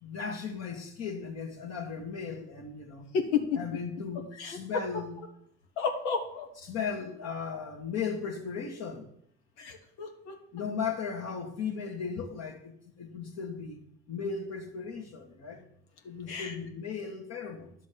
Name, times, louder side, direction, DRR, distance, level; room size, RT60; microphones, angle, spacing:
voice 1, 0.0-3.1 3.5-5.2 6.6-9.1 10.5-13.8 14.1-15.7 16.0-17.7, left 6 dB, 55° left, 2.1 m, -36 dB
voice 2, 5.8-6.5 9.6-10.3 16.3-16.5, left 6 dB, 85° left, 1.4 m, -31 dB
10.5 x 3.9 x 6.9 m
hypercardioid pair, 65°, 31 cm